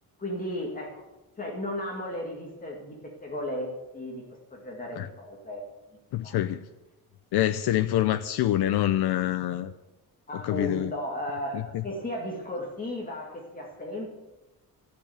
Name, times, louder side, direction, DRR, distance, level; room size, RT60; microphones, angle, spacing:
voice 1, 0.2-0.9 1.4-4.2 4.5-5.6 6.2-6.3 10.3-14.1, left 1 dB, 20° left, -1 dB, 2.2 m, -35 dB
voice 2, 6.1-6.7 7.3-9.7 10.4-10.9 11.5-11.8, left 13 dB, 90° left, 9 dB, 0.7 m, -26 dB
14.5 x 7.0 x 9.0 m, 1.0 s
wide cardioid pair, 165°, 38 cm